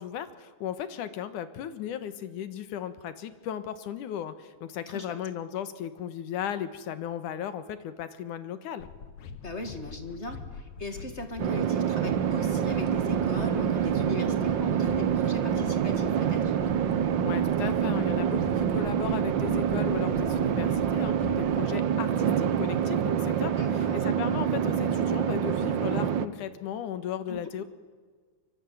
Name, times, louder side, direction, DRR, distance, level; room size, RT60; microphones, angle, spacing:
voice 1, 0.0-8.9 17.2-27.6, left 9 dB, 85° left, 12 dB, 2.9 m, -36 dB
voice 2, 4.9-5.2 9.4-16.5 23.6-24.1 27.3-27.4, left 2 dB, 25° left, 7 dB, 1.9 m, -39 dB
sound 1, 8.8-21.6, left 5 dB, 70° left, 2.8 m, -43 dB
sound 2, 11.4-26.3, right 9 dB, 65° right, 1.1 m, -26 dB
24.0 x 24.0 x 9.4 m, 1.5 s
omnidirectional pair, 3.5 m